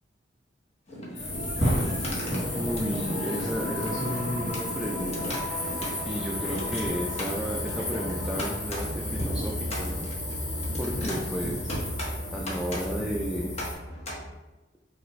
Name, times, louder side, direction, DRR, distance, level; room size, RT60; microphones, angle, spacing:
sound 1, 0.9-14.1, equal, 35° left, 0.9 m, -38 dB
sound 2, 1.1-13.7, left 1 dB, 60° left, 1.3 m, -33 dB
sound 3, 2.1-14.3, equal, 25° right, 0.9 m, -36 dB
voice 1, 2.5-5.4 6.0-10.1 10.8-11.7 12.3-13.5, equal, 5° right, -3 dB, 0.4 m, -33 dB
5.5 x 2.5 x 3.1 m, 1.1 s
head